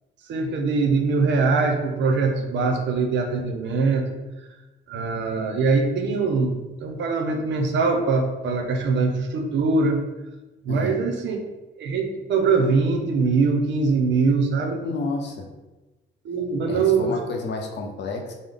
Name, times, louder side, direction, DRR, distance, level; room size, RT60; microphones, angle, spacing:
voice 1, 0.3-4.1 4.9-10.0 10.6-11.4 11.8-14.8 16.2-17.1, right 4 dB, 65° right, 4 dB, 0.6 m, -22 dB
voice 2, 10.7-11.0 14.8-15.5 16.7-18.3, left 3 dB, 60° left, 2 dB, 0.6 m, -30 dB
3.7 x 2.0 x 3.4 m, 1.1 s
cardioid pair, 90°, 20 cm